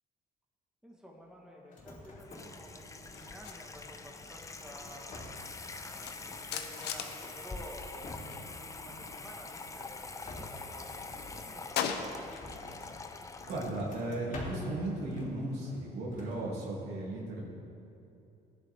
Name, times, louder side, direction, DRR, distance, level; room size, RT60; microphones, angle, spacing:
voice 1, 0.8-5.5 5.8-12.2, equal, 5° right, -1 dB, 1.8 m, -52 dB
sound 1, 1.7-2.6 2.9-3.7 4.2-5.6 5.9-7.4 7.8-8.5 8.8-9.8 10.2-13.0 13.4-14.8 15.1-15.9 16.1-16.4, left 2 dB, 50° left, 3.1 m, -49 dB
Water tap faucet / Sink (filling or washing), 1.8-14.0, left 3 dB, 20° left, 0.7 m, -45 dB
sound 2, 3.1-8.5 8.7-10.4 10.7-12.9 13.2-15.9, left 8 dB, 80° left, 0.9 m, -43 dB
voice 2, 13.2-17.4, right 1 dB, 90° right, -4 dB, 3.0 m, -36 dB
16.0 x 10.5 x 3.7 m, 2.8 s
cardioid pair, 110°, 17 cm